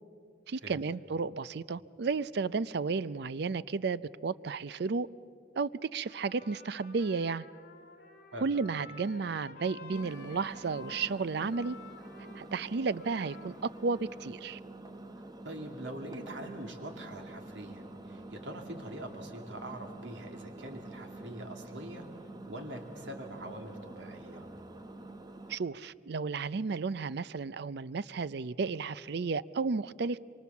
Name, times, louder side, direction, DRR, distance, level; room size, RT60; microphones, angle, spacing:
voice 1, 0.5-5.1 5.6-7.5 8.4-11.8 12.4-14.6 25.5-30.2, right 4 dB, 65° right, 0.5 m, -33 dB
Trumpet, 6.0-14.5, left 4 dB, 55° left, 2.5 m, -52 dB
Engine, 9.9-25.6, right 2 dB, 20° right, 1.1 m, -47 dB
voice 2, 15.4-22.0 22.5-24.5, right 1 dB, 90° right, 2.7 m, -43 dB
25.5 x 24.0 x 7.1 m
head